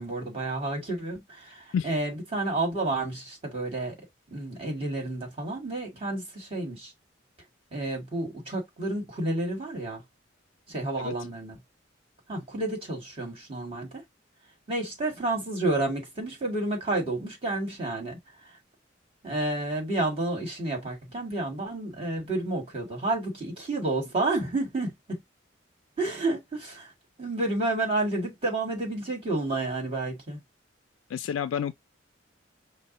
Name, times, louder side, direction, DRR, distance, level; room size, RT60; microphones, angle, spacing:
voice 1, 0.0-4.0 4.3-6.9 7.7-10.0 10.7-11.6 12.3-14.0 14.7-18.5 19.2-25.2 26.0-26.9 27.2-30.4, right 2 dB, 30° right, 2.1 m, -30 dB
voice 2, 31.1-31.7, left 8 dB, 90° left, 0.3 m, -29 dB
5.2 x 2.0 x 4.0 m
head